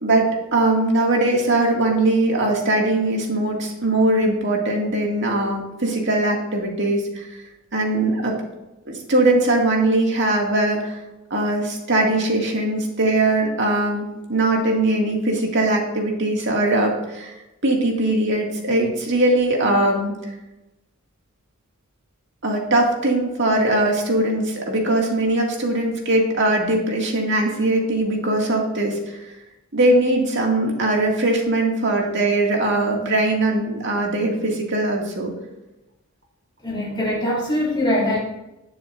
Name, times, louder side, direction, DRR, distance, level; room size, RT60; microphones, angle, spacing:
voice 1, 0.0-7.3 7.7-8.4 8.9-11.0 11.3-17.3 17.6-20.1 22.4-29.2 29.7-35.3, right 2 dB, 55° right, 0 dB, 2.3 m, -20 dB
voice 2, 36.6-38.2, left 1 dB, 20° left, -6 dB, 2.9 m, -22 dB
19.0 x 6.8 x 2.6 m, 0.96 s
head